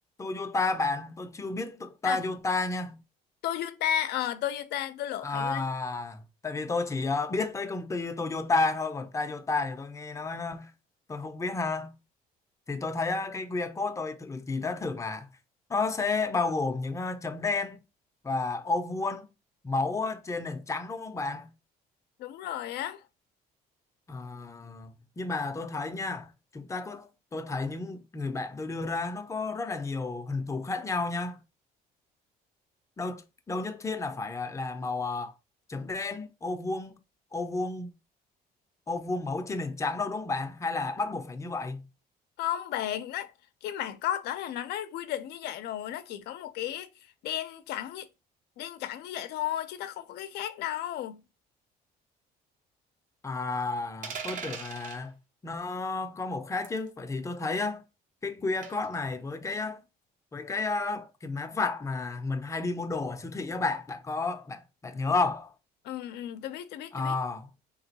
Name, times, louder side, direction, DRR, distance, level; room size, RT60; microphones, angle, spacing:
voice 1, 0.2-3.0 5.2-10.7 11.1-11.9 12.7-15.3 15.7-17.8 18.2-19.3 19.6-21.5 24.1-31.4 33.0-35.3 35.7-37.0 37.3-37.9 38.9-41.8 53.2-55.1 55.4-57.8 58.2-59.8 60.3-65.5 66.9-67.5, left 3 dB, 20° left, 0.5 m, -31 dB
voice 2, 3.4-5.6 22.2-23.0 42.4-43.3 43.6-46.9 47.2-48.1 48.6-51.2 65.8-67.2, left 11 dB, 75° left, 0.5 m, -33 dB
sound 1, 54.0-55.0 56.6-56.9 58.6-58.9, right 6 dB, 50° right, 0.8 m, -39 dB
3.7 x 2.9 x 2.7 m
cardioid pair, 110°, 17 cm